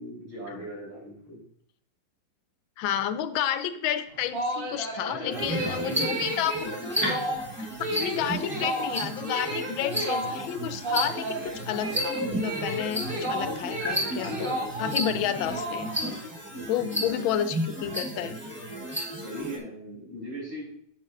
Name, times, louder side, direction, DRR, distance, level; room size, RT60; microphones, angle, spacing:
voice 1, 0.0-1.4 5.1-6.2 19.1-20.7, right 1 dB, 75° right, -5 dB, 4.7 m, -38 dB
voice 2, 2.8-6.7 7.6-15.9 16.7-18.4, left 10 dB, 85° left, 13 dB, 1.4 m, -31 dB
sound 1, 4.1-16.2, right 1 dB, 30° right, 1.6 m, -33 dB
sound 2, 5.3-19.6, equal, 10° right, 0.9 m, -33 dB
8.8 x 7.9 x 2.6 m, 0.66 s
omnidirectional pair, 2.1 m